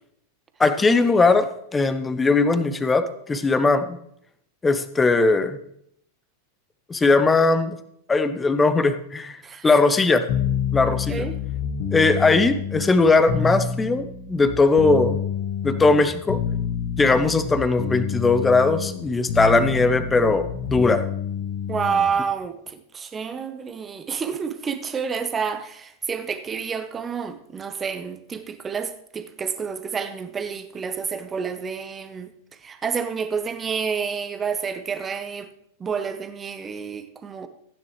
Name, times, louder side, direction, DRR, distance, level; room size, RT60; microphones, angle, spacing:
voice 1, 0.6-3.9 4.6-5.6 6.9-7.8 8.1-9.4 9.6-10.2 10.7-11.2 11.9-15.2 15.6-16.4 17.0-21.1, left 3 dB, 15° left, 0.8 m, -19 dB
voice 2, 9.4-9.8 11.1-11.3 21.7-32.3 32.6-35.5 35.8-37.5, right 6 dB, 20° right, 1.0 m, -29 dB
sound 1, 10.3-22.2, left 7 dB, 45° left, 1.3 m, -28 dB
15.0 x 9.5 x 3.2 m
figure-of-eight pair, 90°, 0 cm